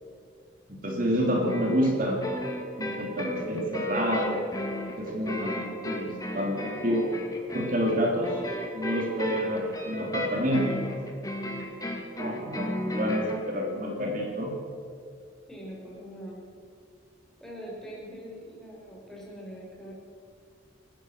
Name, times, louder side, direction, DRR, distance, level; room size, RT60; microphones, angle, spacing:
voice 1, 0.7-2.2 2.8-4.4 5.0-7.1 7.5-8.4 8.7-10.8 12.2-14.5, equal, 45° right, -1 dB, 3.2 m, -28 dB
sound 1, 1.5-13.4, equal, 20° left, 2.4 m, -34 dB
voice 2, 15.5-16.4 17.4-19.9, equal, 5° left, -4 dB, 5.9 m, -42 dB
27.5 x 14.5 x 6.6 m, 2.4 s
head